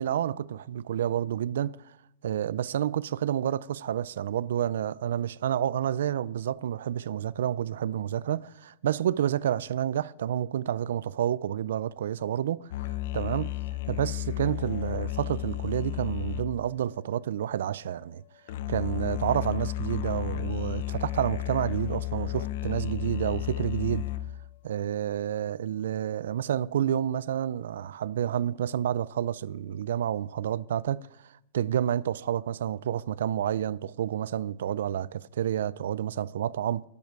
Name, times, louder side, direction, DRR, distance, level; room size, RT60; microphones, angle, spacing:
voice 1, 0.0-1.8 2.2-12.7 13.1-13.5 13.9-18.2 18.7-24.0 24.6-31.0 31.5-36.8, right 10 dB, 85° right, 0.4 m, -29 dB
sound 1, 12.7-17.7 18.5-24.5, left 15 dB, 55° left, 0.6 m, -33 dB
11.0 x 11.0 x 4.7 m
supercardioid pair, 170°, 0 cm